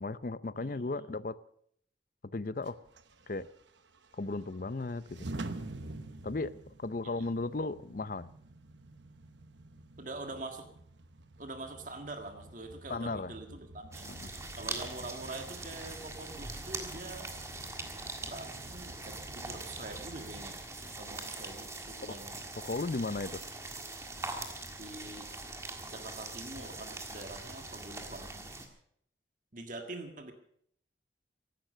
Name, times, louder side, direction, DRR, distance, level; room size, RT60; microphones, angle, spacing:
voice 1, 0.0-1.4 2.3-2.8 3.3-3.5 4.2-5.3 6.2-6.5 6.8-8.3 12.9-13.3 14.1-14.3 22.6-23.4, left 3 dB, 45° left, 16 dB, 0.6 m, -35 dB
voice 2, 0.5-1.1 7.0-7.3 10.0-10.7 11.4-14.1 14.5-17.3 18.2-20.6 20.9-22.3 24.8-25.3 25.8-28.5 29.5-30.3, right 2 dB, 45° right, 5 dB, 1.7 m, -45 dB
sound 1, 2.6-20.5, right 2 dB, 80° right, 1.0 m, -49 dB
sound 2, 13.9-28.7, right 2 dB, 15° right, 1.7 m, -42 dB
15.5 x 12.0 x 6.5 m, 0.66 s
head